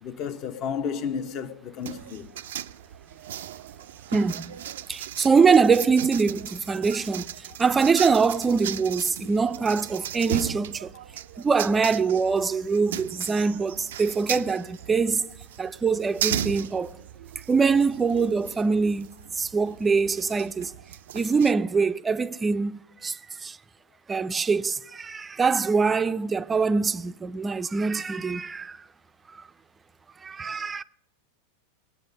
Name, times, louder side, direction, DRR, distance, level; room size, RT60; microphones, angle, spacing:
voice 1, 0.0-2.4, left 7 dB, 45° left, 0.9 m, -32 dB
sound 1, 1.8-21.5, right 11 dB, 80° right, 0.4 m, -37 dB
voice 2, 4.1-4.5 4.9-7.3 7.6-10.9 11.4-16.9 17.5-19.1 19.3-20.7 21.1-23.6 24.1-28.8 29.3-29.4 30.2-30.8, right 5 dB, 15° right, 0.4 m, -24 dB
19.5 x 8.4 x 5.3 m
hypercardioid pair, 125°, 0 cm